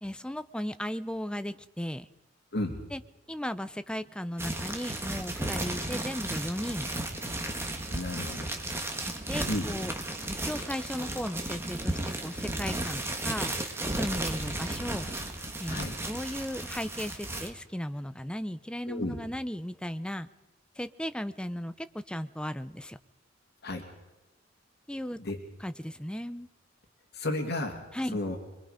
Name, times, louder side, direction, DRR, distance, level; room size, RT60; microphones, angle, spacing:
voice 1, 0.0-2.1 2.9-3.0 3.3-6.9 9.3-9.9 10.3-13.5 13.9-15.1 15.6-20.3 20.8-23.0 24.9-25.2 25.6-26.5 27.9-28.2, equal, 5° left, 12 dB, 0.6 m, -36 dB
sound 1, 4.4-17.5, right 1 dB, 15° right, 1.9 m, -34 dB
voice 2, 7.9-8.5 9.5-9.7 15.7-15.9 18.9-19.2 23.6-23.8 25.2-25.4 27.1-27.8 28.1-28.4, left 1 dB, 60° left, 3 dB, 2.6 m, -32 dB
23.5 x 23.5 x 5.1 m, 1.0 s
head